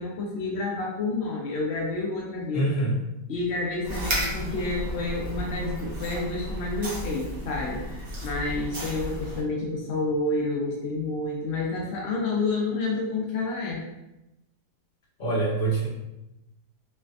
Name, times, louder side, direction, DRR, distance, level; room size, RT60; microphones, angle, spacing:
voice 1, 0.0-2.7 3.3-13.8, left 3 dB, 75° left, -3 dB, 0.6 m, -29 dB
voice 2, 2.5-3.0 15.2-15.9, right 2 dB, 35° left, -6 dB, 1.1 m, -25 dB
sound 1, 3.8-9.4, equal, 45° right, 0.8 m, -33 dB
3.3 x 3.1 x 2.4 m, 0.93 s
omnidirectional pair, 1.8 m